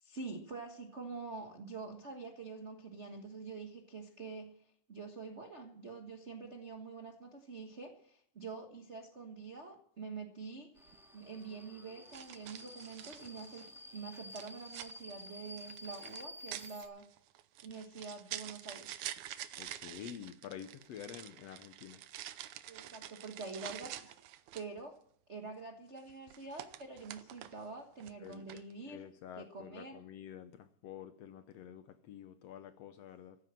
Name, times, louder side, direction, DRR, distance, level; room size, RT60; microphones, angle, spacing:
voice 1, 0.0-10.7 11.1-17.1 17.6-19.0 22.7-24.1 24.5-25.0 25.3-29.1 29.4-30.0, right 4 dB, 50° right, 0.8 m, -46 dB
Subway metro underground, 10.8-16.9, left 1 dB, ahead, 1.3 m, -51 dB
sound 1, 10.8-11.0 12.1-13.8 14.3-24.8 26.0-27.7 28.0-28.7, right 12 dB, 80° right, 2.2 m, -48 dB
voice 2, 19.6-22.0 28.2-33.4, left 9 dB, 70° left, 1.7 m, -49 dB
14.5 x 9.9 x 7.6 m
omnidirectional pair, 3.5 m